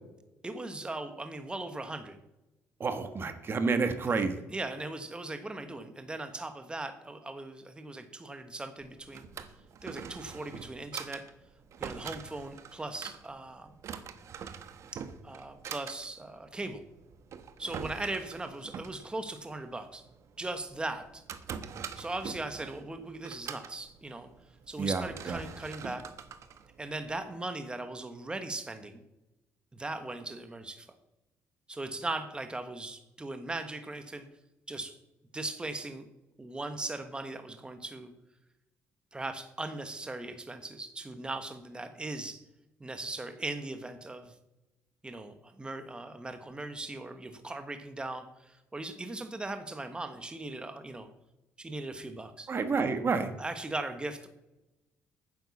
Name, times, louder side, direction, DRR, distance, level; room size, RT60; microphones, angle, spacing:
voice 1, 0.4-2.2 4.1-9.3 9.8-11.3 11.8-13.7 14.9-16.8 17.6-20.0 20.4-21.2 22.0-24.3 24.7-26.0 26.8-29.0 29.7-30.9 31.7-34.2 34.7-35.0 35.3-36.1 36.4-38.1 39.1-42.4 42.8-44.3 45.0-51.1 51.6-52.5 53.4-54.3, right 2 dB, 15° right, 8 dB, 1.3 m, -39 dB
voice 2, 2.8-4.4 24.8-25.4 52.5-53.3, right 4 dB, 40° right, 8 dB, 1.3 m, -29 dB
Drawer open or close, 8.8-27.4, right 7 dB, 60° right, 1.1 m, -45 dB
9.9 x 7.7 x 7.2 m, 0.96 s
cardioid pair, 80°, 6 cm